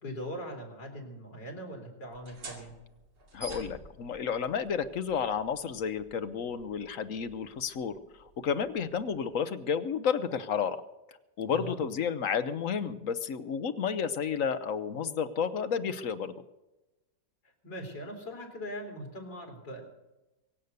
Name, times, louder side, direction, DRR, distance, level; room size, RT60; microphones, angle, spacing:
voice 1, 0.0-2.7 11.5-11.8 17.6-19.8, equal, 85° left, 1 dB, 4.0 m, -41 dB
sound 1, 2.1-9.4, right 1 dB, 60° right, 3.0 m, -50 dB
voice 2, 3.3-10.8 11.4-16.4, left 7 dB, 60° left, 11 dB, 1.0 m, -31 dB
23.5 x 8.2 x 6.7 m, 1.0 s
omnidirectional pair, 1.9 m